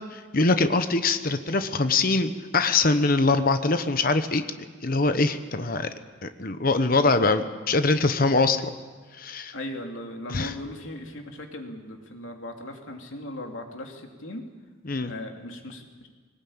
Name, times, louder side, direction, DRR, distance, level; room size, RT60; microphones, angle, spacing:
voice 1, 0.1-4.4 4.8-5.9 6.2-8.7 9.2-9.5 10.3-10.5 14.8-15.1, left 3 dB, 45° left, 9 dB, 1.1 m, -23 dB
voice 2, 9.5-14.4 15.0-16.1, left 1 dB, 85° left, 3 dB, 2.9 m, -38 dB
21.0 x 19.0 x 8.8 m, 1.5 s
head